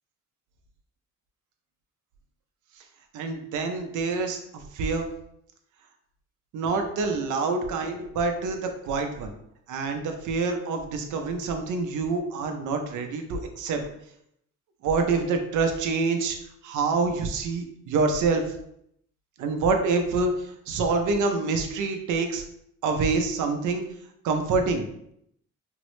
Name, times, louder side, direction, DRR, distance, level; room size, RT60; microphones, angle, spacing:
voice 1, 3.1-4.4 4.7-5.1 6.5-9.3 9.7-13.8 14.8-16.4 16.6-18.4 19.4-20.3 20.7-22.4 22.8-23.8 24.2-24.8, right 4 dB, 80° right, 5 dB, 0.6 m, -26 dB
3.6 x 2.0 x 3.0 m, 0.74 s
cardioid pair, 90°, 30 cm